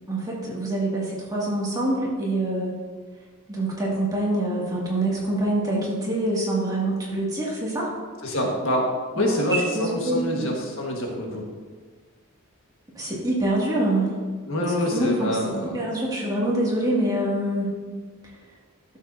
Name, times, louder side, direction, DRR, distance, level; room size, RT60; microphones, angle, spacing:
voice 1, 0.1-2.7 3.5-7.9 9.2-10.5 12.9-14.2 14.5-14.6 14.9-17.8, right 1 dB, 15° right, -6 dB, 2.1 m, -25 dB
voice 2, 8.2-8.9 9.1-11.5 14.5-15.8, left 1 dB, 65° left, 0 dB, 1.5 m, -26 dB
11.5 x 7.6 x 2.7 m, 1.5 s
head